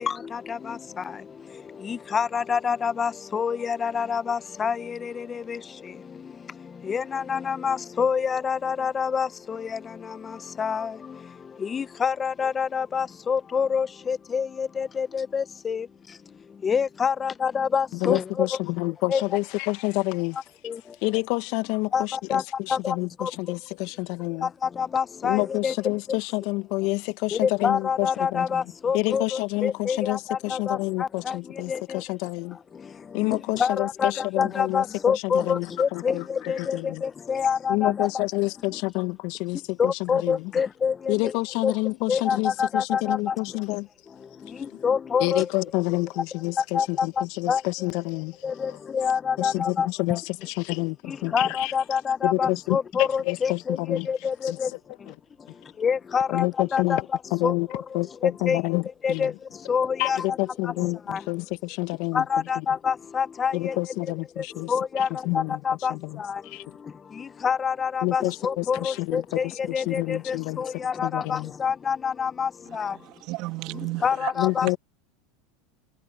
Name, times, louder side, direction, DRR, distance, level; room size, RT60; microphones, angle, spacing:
voice 1, 0.0-18.5 19.1-19.2 20.6-21.0 21.9-22.4 22.7-23.3 24.4-25.7 27.3-32.0 32.7-38.2 39.8-41.3 41.6-41.7 42.1-43.4 44.2-45.5 46.6-47.6 48.4-50.2 51.1-54.7 55.0-55.1 55.4-56.5 56.7-57.0 57.4-57.8 58.2-58.6 59.0-60.2 60.8-61.2 62.1-63.8 64.4-73.0 74.0-74.8, left 6 dB, 25° left, 0.8 m, -27 dB
voice 2, 17.9-20.4 21.0-24.5 25.2-28.4 28.9-32.6 33.1-37.0 37.7-40.5 41.1-43.9 44.7-44.8 45.2-48.8 49.4-51.7 52.2-54.8 55.1-55.2 56.3-57.7 57.9-59.3 60.0-62.2 62.5-62.6 63.5-65.6 65.9-66.6 68.0-71.5 74.4-74.8, left 25 dB, 60° left, 1.5 m, -28 dB
voice 3, 72.7-74.3 74.6-74.7, right 21 dB, 55° right, 2.8 m, -34 dB
hypercardioid pair, 90°, 0 cm